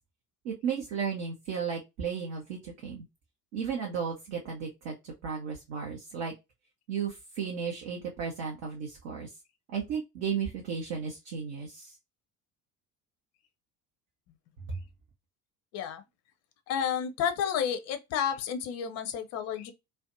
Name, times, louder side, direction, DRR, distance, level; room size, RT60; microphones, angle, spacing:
voice 1, 0.4-3.1 3.5-6.3 6.9-9.3 9.7-11.9 14.7-14.8, right 6 dB, 55° right, 0.9 m, -34 dB
voice 2, 16.7-19.7, left 8 dB, 35° left, 0.5 m, -31 dB
2.5 x 2.2 x 2.4 m
figure-of-eight pair, 60°, 49 cm